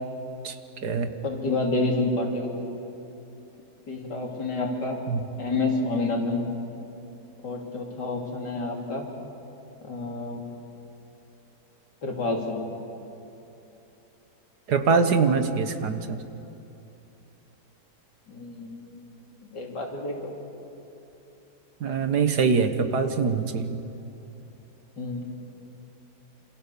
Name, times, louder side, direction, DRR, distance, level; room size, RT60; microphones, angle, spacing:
voice 1, 1.2-2.5 3.9-5.0 5.4-6.4 7.4-9.1 9.8-10.4 12.0-12.6 18.3-19.0 19.5-20.3 25.0-25.2, left 2 dB, 75° left, 0 dB, 3.9 m, -29 dB
voice 2, 14.7-16.2 21.8-23.8, right 5 dB, 65° right, 8 dB, 1.9 m, -23 dB
27.5 x 26.5 x 7.0 m, 2.9 s
omnidirectional pair, 1.9 m